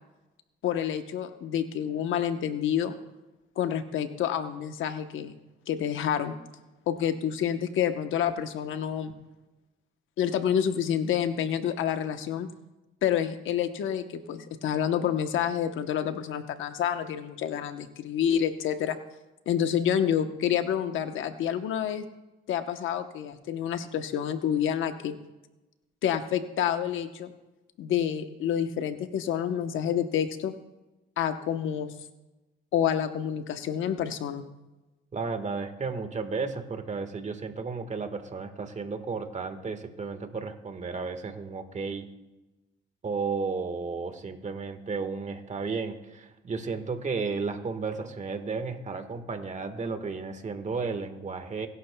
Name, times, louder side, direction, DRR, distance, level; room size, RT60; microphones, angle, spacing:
voice 1, 0.6-2.9 3.6-5.3 5.7-6.4 6.9-9.1 10.2-12.5 13.0-19.0 19.5-22.0 22.5-25.1 26.0-27.3 27.8-30.5 31.2-31.9 32.7-34.4, left 9 dB, 80° left, 8 dB, 1.0 m, -28 dB
voice 2, 35.1-42.1 43.0-51.7, right 4 dB, 35° right, 8 dB, 1.5 m, -33 dB
24.5 x 11.5 x 2.3 m, 1.0 s
cardioid pair, 90°, 20 cm